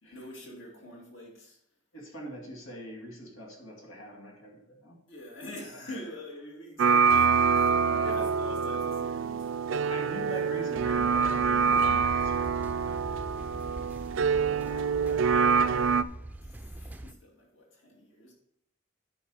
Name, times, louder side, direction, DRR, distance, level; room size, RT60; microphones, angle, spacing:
voice 1, 0.0-1.6 5.1-9.5 16.4-18.3, left 1 dB, 65° left, -2 dB, 2.5 m, -45 dB
voice 2, 1.9-5.0 5.7-6.0 7.8-8.3 9.9-13.0 14.3-15.5, equal, 85° left, 0 dB, 2.1 m, -44 dB
sound 1, 6.8-16.0, right 5 dB, 70° right, 0.4 m, -25 dB
sound 2, 10.8-17.1, right 1 dB, 10° right, 0.5 m, -43 dB
9.8 x 5.6 x 4.8 m, 0.75 s
head